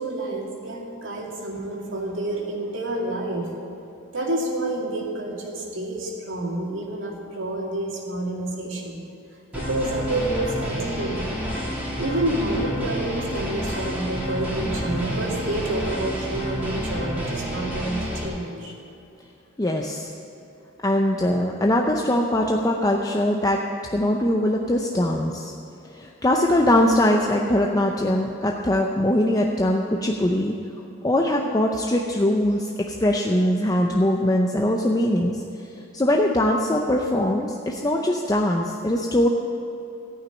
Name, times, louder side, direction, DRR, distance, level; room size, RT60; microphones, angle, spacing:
voice 1, 0.0-3.5 4.1-9.0 9.5-11.2 12.0-18.7, right 1 dB, 70° right, -1 dB, 2.3 m, -28 dB
sound 1, 9.5-18.3, equal, 5° right, 3.0 m, -29 dB
voice 2, 19.6-20.1 20.8-23.6 23.9-25.5 25.9-30.5 31.0-35.4 35.9-39.3, left 1 dB, 20° left, 1 dB, 0.6 m, -21 dB
14.5 x 6.0 x 8.9 m, 2.8 s
head